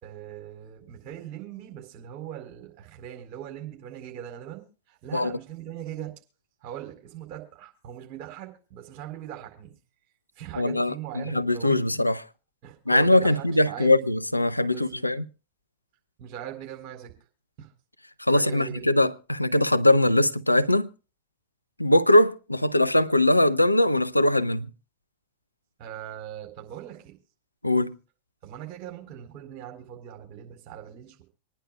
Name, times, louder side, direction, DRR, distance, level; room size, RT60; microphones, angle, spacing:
voice 1, 0.0-6.1 6.6-9.7 10.4-12.0 12.6-13.9 14.7-15.1 16.2-17.1 17.6-17.7 18.3-18.8 25.8-27.1 28.4-31.2, right 11 dB, 40° right, 4.3 m, -40 dB
voice 2, 10.6-12.2 12.9-15.2 18.2-20.9 21.8-24.7 27.6-27.9, left 1 dB, 85° left, 0.5 m, -21 dB
26.5 x 10.0 x 2.2 m
figure-of-eight pair, 90°, 0 cm